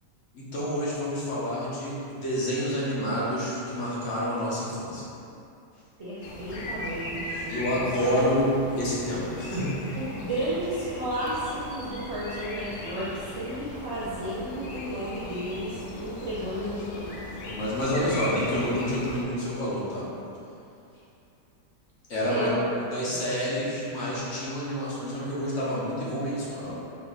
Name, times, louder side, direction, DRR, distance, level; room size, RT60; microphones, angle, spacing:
voice 1, 0.3-5.1 7.5-8.5 8.8-9.8 16.5-16.7 17.5-20.0 22.1-22.5 22.8-26.8, equal, 50° left, -7 dB, 1.1 m, -28 dB
voice 2, 6.0-7.9 9.9-13.1 13.3-17.1 22.3-22.6 23.0-23.2, right 1 dB, 55° right, -10 dB, 0.8 m, -32 dB
sound 1, 6.2-19.2, left 1 dB, 70° left, 0.6 m, -38 dB
4.5 x 2.7 x 4.0 m, 2.6 s
omnidirectional pair, 1.8 m